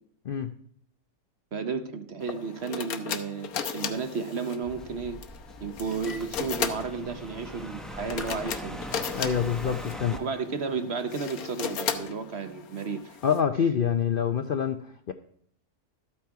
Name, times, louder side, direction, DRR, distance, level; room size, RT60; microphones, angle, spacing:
voice 1, 1.5-5.2 5.6-8.8 10.1-13.2, right 5 dB, 50° right, 9 dB, 0.9 m, -33 dB
sound 1, 2.2-13.4, left 7 dB, 65° left, 1.3 m, -36 dB
sound 2, 4.6-10.2, equal, ahead, 0.5 m, -41 dB
voice 2, 9.1-10.1 13.2-15.1, left 7 dB, 90° left, 7 dB, 0.4 m, -26 dB
13.5 x 8.8 x 4.6 m, 0.68 s
omnidirectional pair, 1.7 m